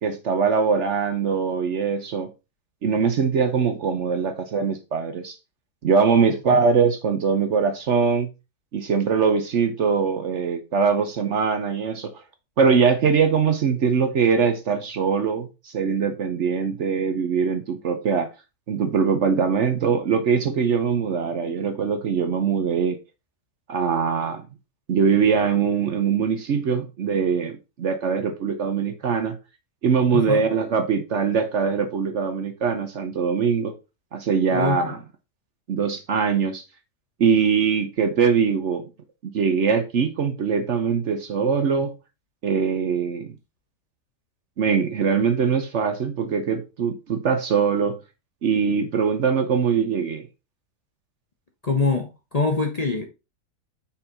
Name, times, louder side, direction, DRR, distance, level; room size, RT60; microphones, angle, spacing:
voice 1, 0.0-2.3 2.8-5.4 5.8-8.3 8.7-12.1 12.6-18.3 18.7-23.0 23.7-24.4 24.9-29.4 29.8-33.7 34.1-35.0 35.7-36.6 37.2-38.8 39.2-41.9 42.4-43.3 44.6-48.0 48.4-50.3, right 6 dB, 55° right, 1.0 m, -22 dB
voice 2, 6.3-6.6 30.1-30.5 34.5-34.9 51.6-53.0, left 4 dB, 35° left, 0.7 m, -24 dB
5.6 x 4.5 x 3.9 m
omnidirectional pair, 1.7 m